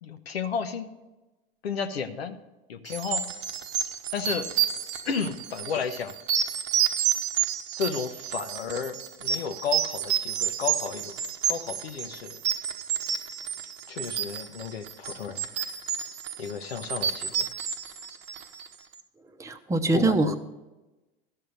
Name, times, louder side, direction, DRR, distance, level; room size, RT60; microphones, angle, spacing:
voice 1, 0.0-0.9 1.6-2.3 2.7-3.2 4.1-4.5 5.0-6.1 7.8-11.1 11.5-12.4 13.9-15.4 16.4-17.5 19.9-20.4, left 6 dB, 90° left, 8 dB, 0.9 m, -32 dB
sound 1, 2.9-18.7, right 9 dB, 60° right, 0.9 m, -30 dB
voice 2, 19.4-20.4, right 2 dB, 10° right, 6 dB, 0.8 m, -23 dB
13.0 x 5.6 x 6.5 m, 1.1 s
hypercardioid pair, 85°, 30 cm